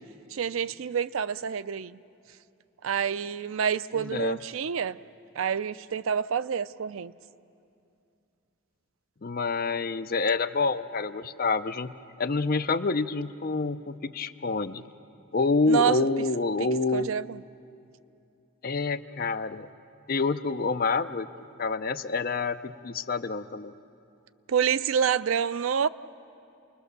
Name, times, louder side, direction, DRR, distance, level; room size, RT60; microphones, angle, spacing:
voice 1, 0.3-2.0 2.8-5.0 5.4-7.1 15.7-16.0 16.6-17.4 24.5-25.9, right 7 dB, 80° right, 16 dB, 0.5 m, -28 dB
voice 2, 4.0-4.4 9.2-14.8 15.3-17.1 18.6-19.7 20.1-21.3 21.6-23.7, left 3 dB, 45° left, 11 dB, 0.6 m, -27 dB
29.0 x 21.0 x 6.7 m, 2.6 s
head